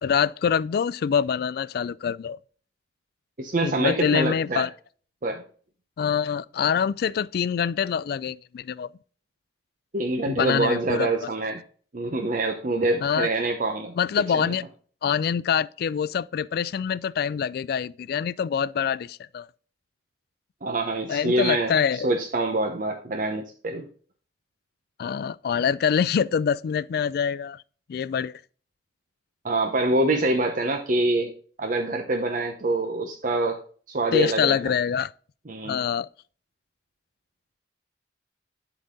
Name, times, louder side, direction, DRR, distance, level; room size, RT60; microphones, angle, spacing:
voice 1, 0.0-2.4 3.6-4.7 6.0-8.9 10.3-11.1 13.0-13.3 14.0-14.6 15.0-19.5 21.1-22.1 25.0-27.6 27.9-28.3 34.1-35.1 35.6-36.1, left 7 dB, 60° left, 0.3 m, -25 dB
voice 2, 3.4-4.7 5.2-5.4 9.9-11.6 11.9-13.9 14.3-14.5 20.6-23.9 29.4-31.3 31.6-33.6 33.9-34.7 35.5-35.8, right 2 dB, 50° right, 0.8 m, -25 dB
11.5 x 4.0 x 3.7 m
head